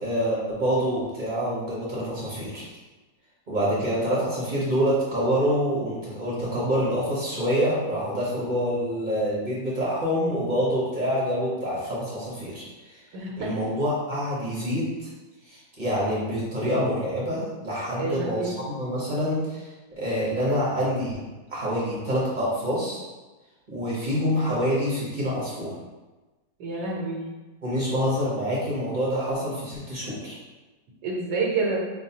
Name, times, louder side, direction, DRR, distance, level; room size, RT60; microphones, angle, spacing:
voice 1, 0.0-2.7 3.5-13.0 13.4-14.9 15.5-19.7 20.0-21.2 21.5-23.0 23.7-25.7 27.6-30.4, equal, 35° right, -7 dB, 0.8 m, -26 dB
voice 2, 13.1-13.6 18.0-18.5 26.6-27.2 31.0-31.8, right 3 dB, 90° right, -2 dB, 1.3 m, -28 dB
6.0 x 2.3 x 2.7 m, 1.2 s
omnidirectional pair, 1.8 m